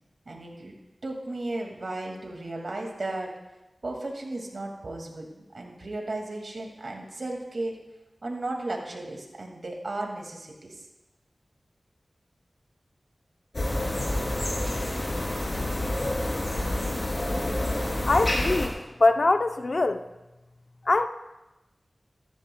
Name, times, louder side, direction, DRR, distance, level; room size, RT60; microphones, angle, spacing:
voice 1, 0.3-0.7 1.0-3.3 3.8-7.8 8.2-10.8, right 2 dB, 70° right, 1 dB, 2.2 m, -35 dB
sound 1, 13.5-18.7, left 1 dB, 45° left, 3.1 m, -28 dB
voice 2, 18.1-20.0 20.8-21.1, left 2 dB, 65° left, 8 dB, 0.6 m, -23 dB
14.0 x 14.0 x 2.3 m, 1.0 s
wide cardioid pair, 50°, 0 cm